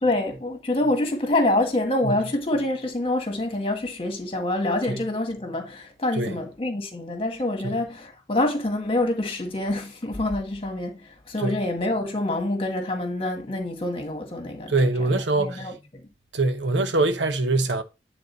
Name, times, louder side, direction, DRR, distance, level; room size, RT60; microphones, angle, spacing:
voice 1, 0.0-16.0, left 1 dB, 30° left, 1.6 m, -26 dB
voice 2, 14.7-15.7 16.3-17.8, right 2 dB, 90° right, 1.0 m, -23 dB
9.4 x 3.8 x 4.0 m
head